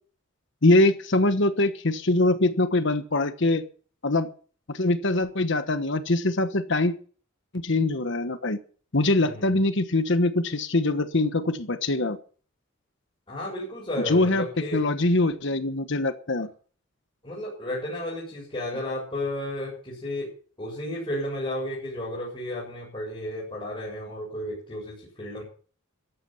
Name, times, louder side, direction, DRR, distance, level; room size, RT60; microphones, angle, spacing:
voice 1, 0.6-3.6 4.0-4.3 4.7-6.9 7.5-8.6 8.9-12.2 14.1-14.4 14.7-16.5, left 2 dB, 60° left, 10 dB, 1.2 m, -23 dB
voice 2, 9.1-9.6 13.3-14.8 17.2-20.3 20.6-25.4, left 1 dB, 25° left, -5 dB, 7.0 m, -33 dB
14.0 x 12.0 x 5.7 m, 0.42 s
head